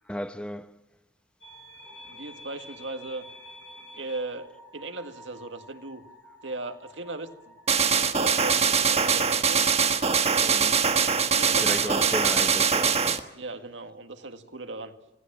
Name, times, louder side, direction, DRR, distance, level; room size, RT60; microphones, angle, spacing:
voice 1, 0.1-0.7 10.4-10.8 11.5-13.2, equal, 5° left, 0.8 m, -35 dB
sound 1, 1.4-10.8, left 1 dB, 85° left, 4.1 m, -50 dB
voice 2, 2.1-3.2 3.9-6.0 6.4-7.5 7.9-9.7 11.3-12.1 13.3-14.9, right 2 dB, 80° right, 1.9 m, -37 dB
sound 2, 7.7-13.2, right 6 dB, 35° right, 1.4 m, -23 dB
27.0 x 17.5 x 7.4 m
head